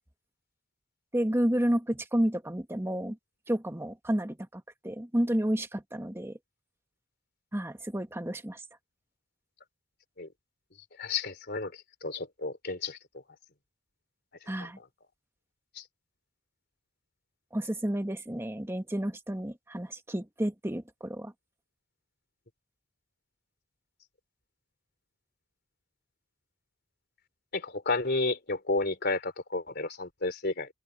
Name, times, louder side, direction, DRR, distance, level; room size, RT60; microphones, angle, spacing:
voice 1, 1.1-3.2 3.5-6.4 7.5-8.6 14.5-14.8 17.5-21.3, right 1 dB, 10° right, 1.2 m, -31 dB
voice 2, 11.0-11.7 12.0-13.0 15.8-15.9 27.5-30.7, left 3 dB, 55° left, 3.7 m, -31 dB
open air
head